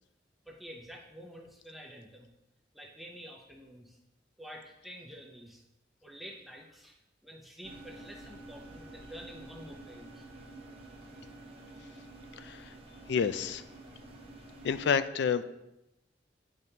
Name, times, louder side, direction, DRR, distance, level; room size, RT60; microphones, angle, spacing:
voice 1, 0.5-2.3 2.7-4.0 4.4-5.6 6.0-10.2, equal, ahead, 0 dB, 0.6 m, -49 dB
sound 1, 7.6-14.9, right 2 dB, 35° right, 0.8 m, -49 dB
voice 2, 13.1-13.6 14.6-15.4, left 6 dB, 65° left, 12 dB, 0.3 m, -28 dB
9.3 x 5.3 x 2.8 m, 0.91 s
head